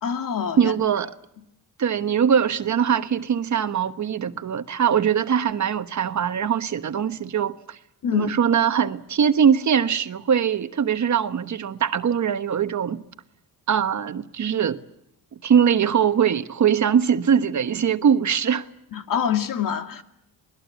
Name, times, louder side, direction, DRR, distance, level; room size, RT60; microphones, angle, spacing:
voice 1, 0.0-0.7 8.0-8.3 18.9-20.0, left 8 dB, 60° left, 2.3 m, -25 dB
voice 2, 0.6-1.2 1.8-7.8 8.1-13.0 13.7-14.8 15.4-18.7, right 8 dB, 50° right, 1.2 m, -22 dB
29.0 x 20.0 x 8.1 m
cardioid pair, 95°, 37 cm